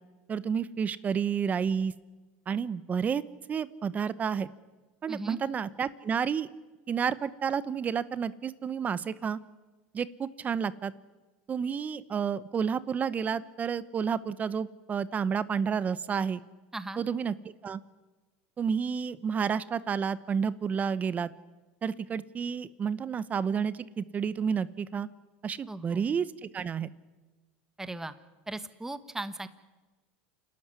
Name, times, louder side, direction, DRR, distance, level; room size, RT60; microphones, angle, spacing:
voice 1, 0.3-1.9 2.5-3.2 3.5-4.5 5.0-6.5 6.9-9.4 9.9-10.9 11.5-16.4 17.0-17.8 18.6-21.3 21.8-25.1 25.4-26.9, right 7 dB, 30° right, 16 dB, 0.9 m, -30 dB
voice 2, 5.1-5.4 16.7-17.0 25.7-26.0 27.8-28.1 28.5-29.5, right 2 dB, 10° right, 11 dB, 1.4 m, -37 dB
28.5 x 13.0 x 9.7 m, 1.2 s
supercardioid pair, 110°, 6 cm